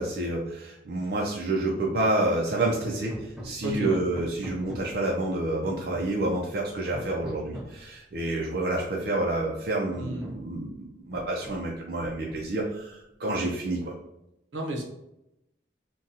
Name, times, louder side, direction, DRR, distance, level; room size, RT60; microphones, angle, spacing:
voice 1, 0.0-13.9, right 2 dB, 55° right, -2 dB, 0.5 m, -29 dB
Hammer, 2.8-5.1 5.6-6.5 6.9-7.8 8.9-9.0 9.4-9.5 9.9-10.6 11.1-11.7 12.0-12.7, equal, ahead, 0.5 m, -42 dB
voice 2, 3.6-4.0 10.0-10.3 14.5-14.8, right 1 dB, 85° right, 0 dB, 0.8 m, -31 dB
3.9 x 2.3 x 2.7 m, 0.85 s
head